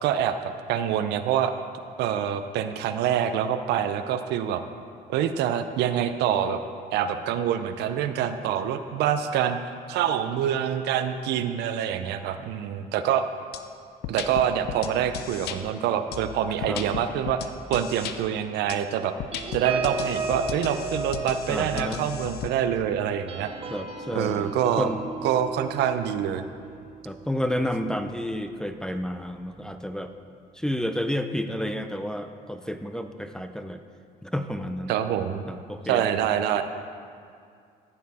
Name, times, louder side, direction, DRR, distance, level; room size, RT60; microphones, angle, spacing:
voice 1, 0.0-1.5 2.0-4.6 5.1-6.6 6.9-9.6 9.9-13.3 14.1-19.1 19.5-23.5 24.1-24.9 25.2-26.4 34.9-35.4 35.9-36.6, right 9 dB, 80° right, 9 dB, 0.6 m, -26 dB
sound 1, 13.5-13.6 14.0-15.6 16.1-18.2 18.7-18.8 19.2-22.5, left 9 dB, 75° left, 0.6 m, -35 dB
guitar chordal improv, 19.3-28.2 28.7-28.9 29.2-29.5, right 4 dB, 35° right, 0.8 m, -36 dB
voice 2, 21.5-22.0 23.7-24.5 24.8-25.0 27.0-30.1 30.5-33.8 34.2-35.0 35.5-36.1, equal, 5° left, 7 dB, 0.5 m, -30 dB
13.5 x 7.4 x 4.2 m, 2.3 s
cardioid pair, 110°, 17 cm